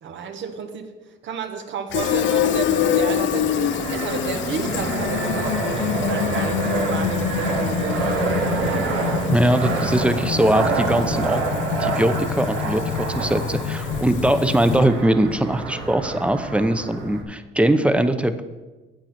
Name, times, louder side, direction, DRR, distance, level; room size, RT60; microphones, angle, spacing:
voice 1, 0.0-9.3, right 6 dB, 70° right, 6 dB, 1.2 m, -32 dB
Fill (with liquid), 1.9-15.0, left 11 dB, 70° left, 0.4 m, -26 dB
Fixed-wing aircraft airplane, 2.0-17.2, right 4 dB, 90° right, 1.7 m, -28 dB
voice 2, 9.3-11.4 11.8-18.4, right 1 dB, 5° right, 10 dB, 0.7 m, -21 dB
8.9 x 7.8 x 5.9 m, 1.2 s
cardioid pair, 90°, 20 cm